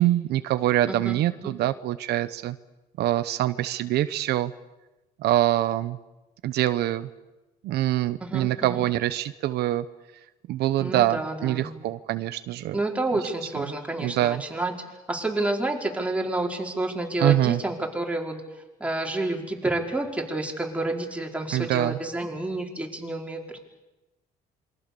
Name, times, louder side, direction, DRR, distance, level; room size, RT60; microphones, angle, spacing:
voice 1, 0.0-2.6 3.0-4.5 5.2-6.0 6.4-7.1 7.6-9.9 10.5-12.8 14.0-14.4 17.2-17.6 21.5-22.0, right 14 dB, 75° right, 12 dB, 1.0 m, -24 dB
voice 2, 8.2-8.8 10.8-11.8 12.7-14.7 15.1-18.4 18.8-23.6, right 2 dB, 10° right, 0 dB, 4.7 m, -29 dB
27.5 x 24.0 x 6.9 m, 1.0 s
cardioid pair, 110°, 17 cm